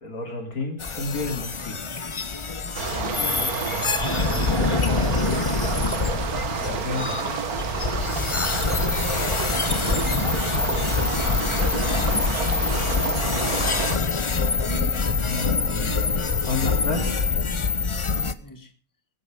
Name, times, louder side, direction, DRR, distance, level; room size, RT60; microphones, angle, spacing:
voice 1, 0.0-1.8 4.1-5.5 6.6-7.4 15.3-16.0 16.3-17.1, left 3 dB, 80° left, 3 dB, 3.4 m, -31 dB
sound 1, 0.8-18.3, left 4 dB, 35° left, 0.5 m, -25 dB
sound 2, 2.7-14.0, right 5 dB, 80° right, 1.9 m, -29 dB
voice 2, 3.2-3.6 9.9-10.6 12.1-14.0 18.4-18.7, left 2 dB, 15° left, 6 dB, 1.7 m, -39 dB
sound 3, 12.4-17.8, equal, 30° right, 2.7 m, -41 dB
21.5 x 8.4 x 5.1 m, 0.41 s
omnidirectional pair, 1.5 m